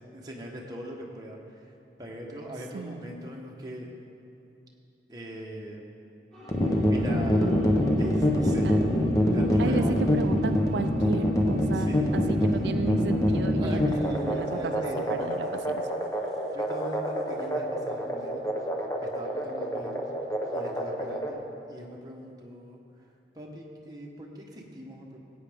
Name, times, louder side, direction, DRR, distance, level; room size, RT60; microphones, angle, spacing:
voice 1, 0.1-3.9 5.1-6.1 6.6-7.5 8.0-8.7 9.3-10.1 11.7-12.0 13.6-15.2 16.5-18.4 19.0-20.0 20.5-22.8 23.3-25.2, right 1 dB, 20° right, -2 dB, 1.1 m, -40 dB
voice 2, 2.7-3.2 8.6-8.8 9.6-14.8 15.1-15.9, right 4 dB, 80° right, 7 dB, 0.4 m, -34 dB
sound 1, 6.3-15.7, left 3 dB, ahead, 2.9 m, -43 dB
sound 2, 6.5-21.3, equal, 20° left, 0.9 m, -25 dB
15.5 x 8.6 x 3.6 m, 2.7 s
head